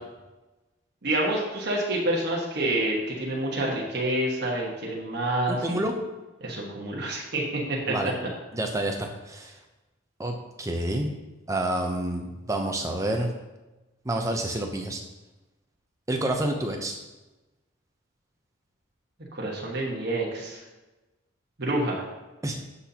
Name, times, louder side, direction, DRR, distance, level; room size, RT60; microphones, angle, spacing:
voice 1, 1.0-5.8 6.4-7.9 19.3-20.6 21.6-22.1, right 1 dB, 50° right, -2 dB, 1.2 m, -28 dB
voice 2, 5.5-5.9 7.9-8.1 8.5-9.5 10.2-11.1 11.5-13.3 14.1-15.0 16.1-17.0 22.4-22.6, right 1 dB, 15° right, 3 dB, 0.6 m, -28 dB
12.0 x 4.2 x 2.8 m, 1.1 s
head